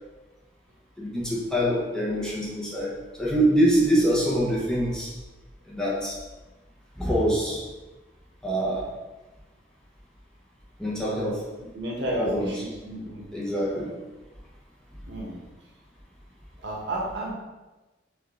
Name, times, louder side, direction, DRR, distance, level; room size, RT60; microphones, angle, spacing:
voice 1, 1.0-5.1 5.7-6.2 7.0-7.6 8.4-8.9 10.8-11.5 12.2-12.5 13.3-14.0, equal, 5° left, -6 dB, 0.8 m, -25 dB
voice 2, 11.7-13.2 15.0-15.4 16.6-17.3, right 1 dB, 70° right, -3 dB, 1.1 m, -31 dB
3.5 x 3.5 x 3.6 m, 1.1 s
head